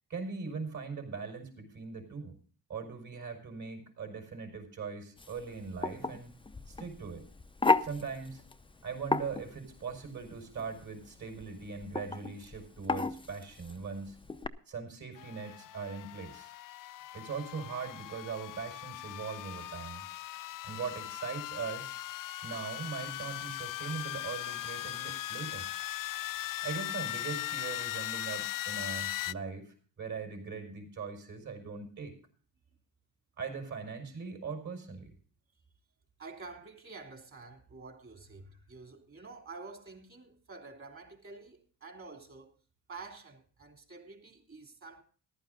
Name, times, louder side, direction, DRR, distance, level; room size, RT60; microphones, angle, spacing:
voice 1, 0.1-2.4 2.7-6.3 6.7-7.3 7.8-8.4 8.8-14.2 14.7-16.5 17.1-20.0 20.6-22.0 22.4-25.7 26.6-32.1 33.4-35.1, right 5 dB, 50° right, 5.2 m, -40 dB
sound 1, 5.2-14.5, left 3 dB, 15° left, 0.7 m, -35 dB
sound 2, 15.2-29.3, left 14 dB, 60° left, 0.5 m, -39 dB
voice 2, 36.2-42.5 42.9-45.0, right 3 dB, 35° right, 3.2 m, -49 dB
14.5 x 11.5 x 3.9 m
cardioid pair, 85°, 37 cm